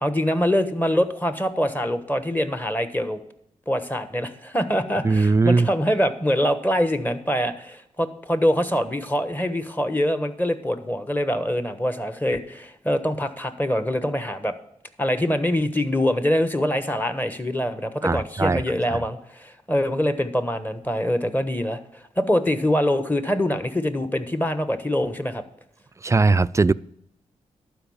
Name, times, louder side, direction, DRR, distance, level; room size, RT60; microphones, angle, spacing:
voice 1, 0.0-3.2 3.7-14.5 15.0-25.4, equal, 10° left, 1.2 m, -24 dB
voice 2, 5.0-5.7 18.0-18.6 18.9-19.0 26.0-26.7, right 3 dB, 20° right, 0.3 m, -19 dB
11.5 x 4.8 x 7.2 m
supercardioid pair, 40°, 14 cm